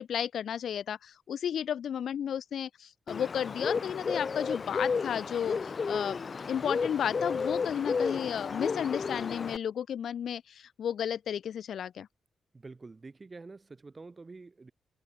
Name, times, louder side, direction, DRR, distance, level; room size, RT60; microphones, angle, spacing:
voice 1, 0.0-6.2 6.5-12.1, left 9 dB, 65° left, 0.4 m, -33 dB
Bird, 3.1-9.6, left 5 dB, 35° left, 0.8 m, -32 dB
voice 2, 12.5-14.7, right 3 dB, 25° right, 2.7 m, -47 dB
wide cardioid pair, 140°, 0 cm